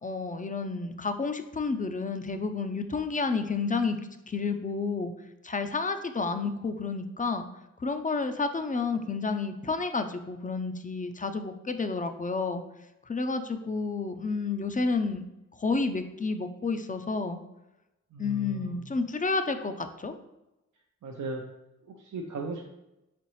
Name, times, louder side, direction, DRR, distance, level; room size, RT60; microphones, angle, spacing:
voice 1, 0.0-4.0 4.3-5.1 5.4-7.5 7.8-12.6 13.1-15.2 15.6-17.4 18.2-20.1, left 4 dB, 25° left, 8 dB, 0.5 m, -30 dB
voice 2, 18.1-18.9 21.0-21.4 21.8-22.7, right 2 dB, 70° right, 1 dB, 0.5 m, -37 dB
4.2 x 3.8 x 3.1 m, 0.93 s
cardioid pair, 45°, 31 cm